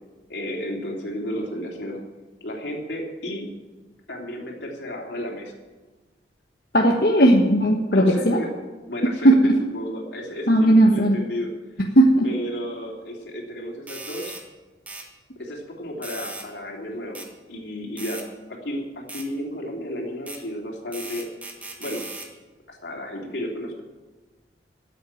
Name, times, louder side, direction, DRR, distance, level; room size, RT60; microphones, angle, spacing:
voice 1, 0.3-2.0 2.4-3.5 4.1-5.6 7.2-7.3 7.9-8.5 8.9-9.3 9.7-11.5 12.2-14.4 15.3-21.3 21.8-22.0 22.7-23.8, equal, 80° left, 0 dB, 3.3 m, -33 dB
voice 2, 6.7-8.4 9.2-9.5 10.5-11.2 11.9-12.3, right 1 dB, 60° left, -1 dB, 1.3 m, -16 dB
sound 1, 13.9-14.4 14.9-15.1 16.0-16.5 17.2-17.3 18.0-18.3 19.1-19.3 20.3-20.4 20.9-22.3, right 2 dB, 10° right, 1.6 m, -37 dB
13.5 x 8.3 x 9.0 m, 1.2 s
head